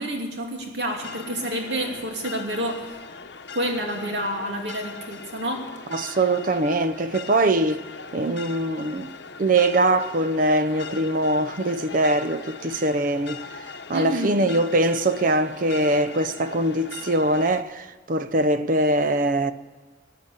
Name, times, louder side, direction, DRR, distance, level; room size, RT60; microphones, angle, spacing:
voice 1, 0.0-3.0 3.5-5.7 13.9-14.4, right 1 dB, 65° right, 2.8 m, -29 dB
sound 1, 1.0-17.6, left 5 dB, 65° left, 0.9 m, -40 dB
voice 2, 5.9-7.8 8.1-9.1 9.4-13.4 13.9-19.5, right 2 dB, 45° right, 0.6 m, -22 dB
17.5 x 9.7 x 8.2 m
head